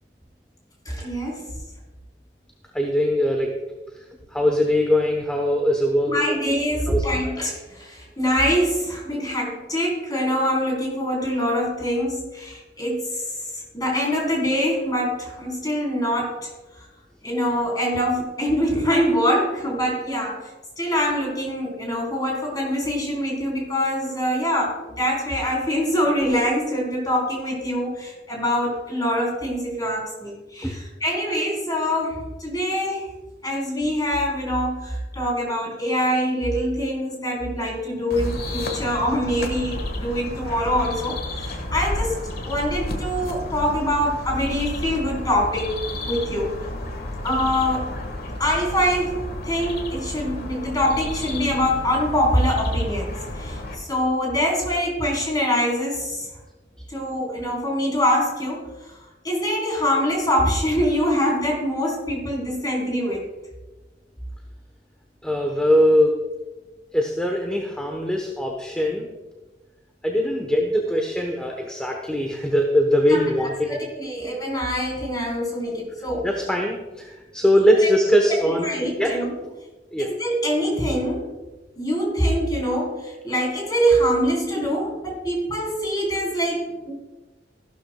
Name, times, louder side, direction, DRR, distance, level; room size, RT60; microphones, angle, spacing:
voice 1, 0.9-1.5 6.1-13.2 13.7-16.5 17.2-20.5 20.8-33.1 33.4-45.7 46.1-46.6 47.2-48.0 48.4-56.3 56.9-58.7 59.2-63.3 73.1-76.3 78.5-79.3 80.0-81.3 81.8-86.9, equal, 20° left, -2 dB, 3.8 m, -24 dB
voice 2, 2.7-3.5 4.3-6.4 6.9-7.3 30.6-30.8 65.2-66.2 66.9-69.0 70.0-73.8 76.2-78.7 79.0-79.2 79.9-80.1, equal, 5° left, 1 dB, 1.0 m, -21 dB
sound 1, 38.1-53.8, left 1 dB, 60° left, 1.6 m, -32 dB
15.0 x 12.0 x 2.3 m, 1.2 s
head